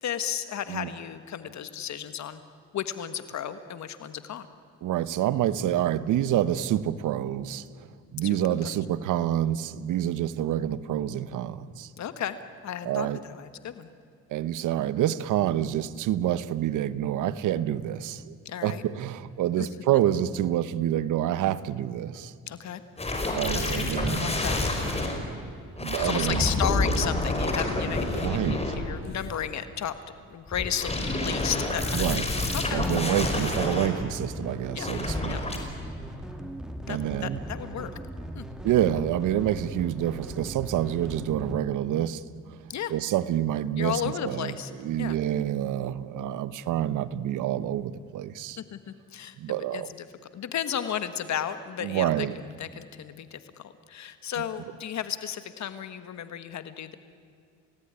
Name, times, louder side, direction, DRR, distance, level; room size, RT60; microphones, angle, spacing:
voice 1, 0.0-2.4 2.7-4.5 8.2-8.7 12.0-12.4 12.6-13.9 18.4-18.8 19.6-19.7 22.5-22.8 23.5-23.9 24.2-24.6 26.0-29.9 30.3-32.2 32.5-32.8 34.7-34.9 35.3-35.4 36.9-37.9 38.3-38.4 42.7-42.9 43.8-44.7 45.0-45.2 48.6-50.1 50.3-57.0, left 9 dB, 65° left, 11 dB, 1.5 m, -34 dB
voice 2, 4.8-7.6 8.1-11.9 12.8-13.2 14.3-18.3 18.6-22.3 23.3-24.3 25.8-26.5 28.1-28.6 31.9-32.2 32.7-35.4 36.9-37.4 38.6-42.2 42.9-44.5 44.8-48.6 49.4-49.9 51.8-52.4, right 11 dB, 85° right, 16 dB, 1.1 m, -27 dB
sound 1, 23.0-25.2 25.8-29.2 30.5-33.9 34.8-35.6, left 2 dB, 20° left, 5.2 m, -28 dB
sound 2, 31.8-41.6, right 1 dB, ahead, 2.5 m, -39 dB
30.0 x 18.5 x 9.8 m, 2.4 s
cardioid pair, 90°, 30 cm